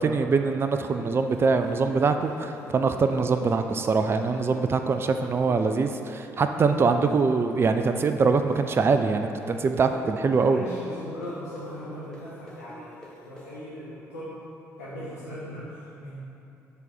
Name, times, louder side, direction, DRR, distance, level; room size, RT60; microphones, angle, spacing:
voice 1, 0.0-10.6, right 4 dB, 30° right, 7 dB, 0.4 m, -23 dB
sound 1, 1.0-8.6 8.9-13.5, equal, 10° left, 1.4 m, -46 dB
voice 2, 10.3-14.4 14.8-16.2, equal, 80° left, -11 dB, 1.0 m, -39 dB
6.9 x 4.0 x 4.3 m, 2.7 s
figure-of-eight pair, 45°, 8 cm